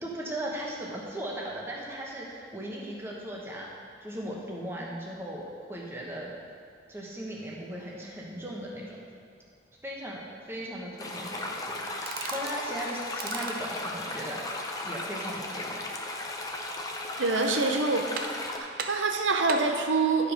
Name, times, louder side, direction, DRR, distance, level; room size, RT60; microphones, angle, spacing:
voice 1, 0.0-6.3 6.9-9.0 9.8-11.8 12.3-15.8, right 1 dB, 15° right, -3 dB, 1.0 m, -37 dB
sound 1, 11.0-18.6, left 2 dB, 20° left, 0.6 m, -36 dB
sound 2, 12.1-12.6 13.1-13.7 16.7-17.2 17.6-17.7 18.2-18.5 18.8-19.8, right 5 dB, 50° right, 0.6 m, -38 dB
voice 2, 17.2-18.1 18.6-20.3, right 3 dB, 90° right, 4 dB, 0.8 m, -25 dB
10.5 x 5.0 x 5.2 m, 2.3 s
head